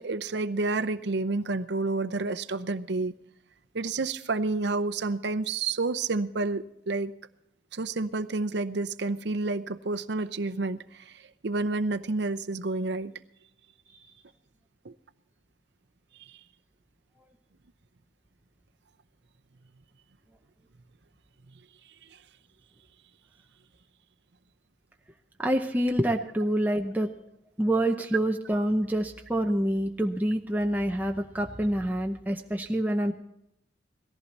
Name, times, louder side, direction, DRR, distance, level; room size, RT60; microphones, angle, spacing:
voice 1, 0.0-3.1 3.7-7.1 7.7-13.1 14.8-14.9 16.3-16.4, right 3 dB, 60° right, 11 dB, 0.7 m, -29 dB
voice 2, 25.4-27.1 27.6-33.1, right 1 dB, 10° right, 2 dB, 0.7 m, -27 dB
18.0 x 14.5 x 4.1 m, 0.79 s
head